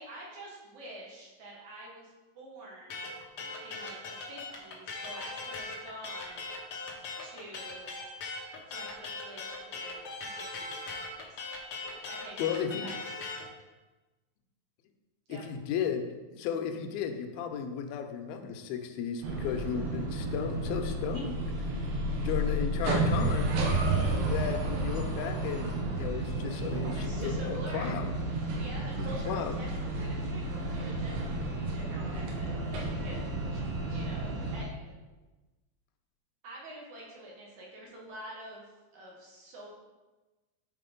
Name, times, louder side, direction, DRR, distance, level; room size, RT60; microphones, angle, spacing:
voice 1, 0.0-3.1 3.6-6.5 7.2-7.9 8.7-11.4 12.1-12.5 12.8-13.0 15.3-15.4 26.8-27.9 28.5-29.7 30.0-33.4 33.9-35.0 36.4-39.7, right 1 dB, 60° right, -3 dB, 2.4 m, -47 dB
sound 1, 2.9-13.4, left 3 dB, 65° left, 1.4 m, -39 dB
voice 2, 12.4-12.9 15.3-21.4 22.2-23.5 24.1-28.2 29.0-29.6, left 7 dB, 90° left, 6 dB, 2.5 m, -35 dB
sound 2, 19.2-34.6, right 2 dB, 85° right, 2.9 m, -31 dB
7.2 x 4.2 x 5.1 m, 1.2 s
omnidirectional pair, 4.2 m